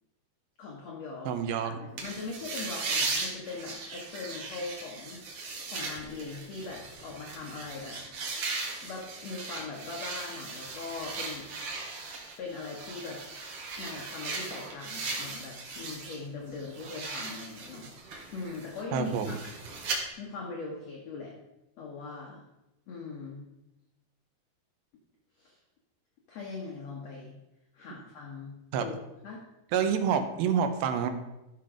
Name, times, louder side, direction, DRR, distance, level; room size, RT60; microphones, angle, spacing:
voice 1, 0.6-1.3 1.6-5.2 5.6-8.0 8.8-11.5 12.4-13.2 13.8-17.9 18.3-19.5 20.2-21.3 21.8-22.4 22.9-23.4 25.4-25.6 26.3-27.3 27.7-28.9 29.2-29.4, left 4 dB, 55° left, -1 dB, 2.0 m, -40 dB
voice 2, 1.3-1.7 18.9-19.4 28.7-28.9 29.7-31.1, right 7 dB, 75° right, 7 dB, 2.7 m, -27 dB
sound 1, 2.0-16.2 16.5-20.0, right 3 dB, 50° right, 1.9 m, -38 dB
13.5 x 6.3 x 5.0 m, 0.94 s
omnidirectional pair, 4.6 m